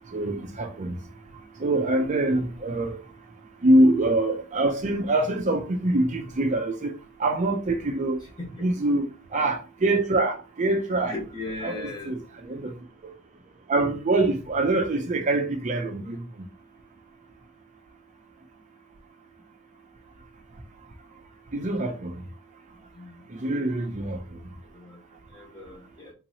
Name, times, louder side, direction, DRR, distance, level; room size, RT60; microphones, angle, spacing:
voice 1, 0.1-1.0 1.6-3.0 3.6-6.9 7.2-8.2 8.6-11.1 11.6-12.7 13.7-16.2 21.5-22.1 23.3-24.2, right 2 dB, 35° right, 0.5 m, -24 dB
voice 2, 8.2-8.6 11.0-12.1 22.9-23.2 24.7-25.0 25.3-26.1, left 2 dB, 20° left, 1.5 m, -38 dB
3.8 x 2.9 x 2.8 m
head